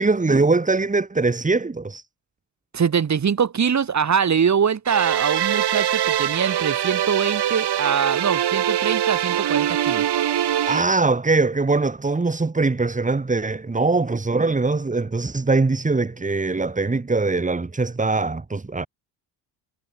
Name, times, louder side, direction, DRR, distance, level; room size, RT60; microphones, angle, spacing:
voice 1, 0.0-2.0 10.7-18.9, right 3 dB, 15° right, 2.4 m, -22 dB
voice 2, 2.7-10.1, right 7 dB, 40° right, 3.0 m, -23 dB
sound 1, 4.9-10.8, right 11 dB, 60° right, 5.4 m, -23 dB
cardioid pair, 85°, 45 cm